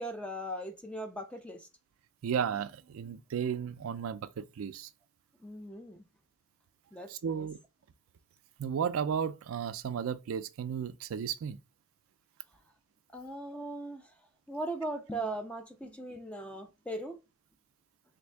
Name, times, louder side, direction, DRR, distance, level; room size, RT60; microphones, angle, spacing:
voice 1, 0.0-1.7 5.4-6.0 6.9-7.5 13.1-14.1 14.5-17.2, right 1 dB, 5° left, 0.4 m, -39 dB
voice 2, 2.2-4.9 7.1-7.6 8.6-11.6, right 7 dB, 70° right, 0.4 m, -34 dB
3.5 x 2.6 x 3.2 m
head